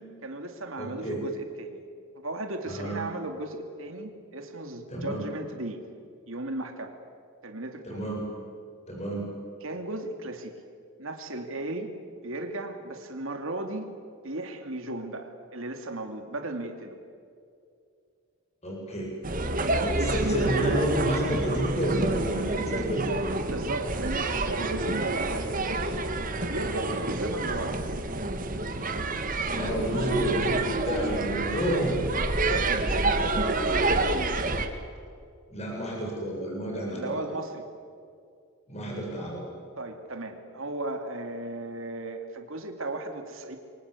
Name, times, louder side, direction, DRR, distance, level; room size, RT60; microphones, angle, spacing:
voice 1, 0.0-1.8 2.2-5.8 6.3-7.0 7.4-8.0 9.6-10.5 11.0-11.9 12.2-13.9 14.2-17.0 19.6-20.7 23.5-26.1 26.5-27.8 32.5-34.1 36.9-37.7 39.8-43.6, right 2 dB, 65° right, 6 dB, 2.5 m, -35 dB
voice 2, 0.8-1.2 2.7-3.0 4.9-5.3 7.8-8.2 8.9-9.3 18.6-19.1 19.9-23.0 29.5-32.1 35.5-37.3 38.7-39.4, right 1 dB, 30° left, -2 dB, 7.2 m, -30 dB
sound 1, 19.2-34.7, right 2 dB, 35° right, 1.9 m, -28 dB
28.5 x 24.0 x 8.4 m, 2.4 s
head